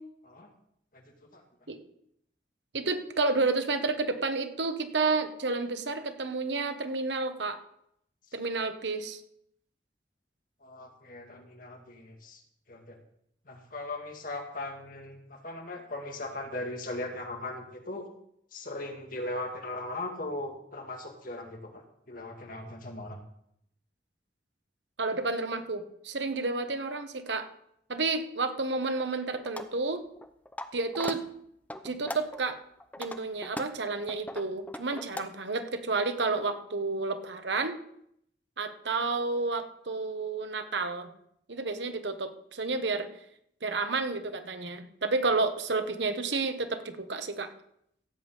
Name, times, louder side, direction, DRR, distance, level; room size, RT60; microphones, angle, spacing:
voice 1, 2.7-7.6 8.3-9.2 25.0-27.5 27.9-30.0 30.7-31.2 31.8-32.6 33.0-37.7 38.6-41.1 41.5-43.1 43.6-47.5, right 3 dB, 85° right, 8 dB, 1.3 m, -30 dB
voice 2, 10.6-12.4 12.7-13.0 13.5-18.1 18.5-23.2, left 2 dB, 50° left, 3 dB, 2.2 m, -39 dB
sound 1, 29.4-29.7 30.2-30.7 30.9-31.2 31.7-32.4 32.8-35.2, left 1 dB, 10° left, 0.7 m, -38 dB
15.5 x 5.4 x 8.2 m, 0.72 s
head